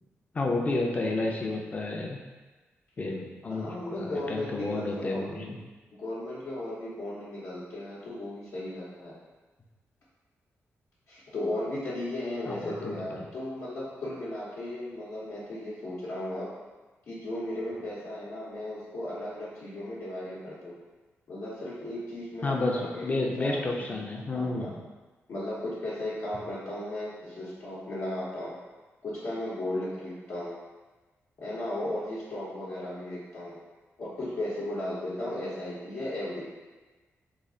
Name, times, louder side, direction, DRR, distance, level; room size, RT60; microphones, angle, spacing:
voice 1, 0.3-2.2 3.0-5.6 12.5-13.3 22.4-24.7, left 2 dB, 30° left, 0 dB, 0.5 m, -31 dB
voice 2, 0.9-1.3 3.5-5.6 5.9-9.1 11.1-16.5 17.1-20.8 21.3-24.7 25.3-28.5 29.0-30.5 31.4-33.6 34.0-36.4, left 1 dB, 70° left, -10 dB, 0.8 m, -36 dB
3.2 x 2.3 x 3.7 m, 1.3 s
wide cardioid pair, 120°, 5 cm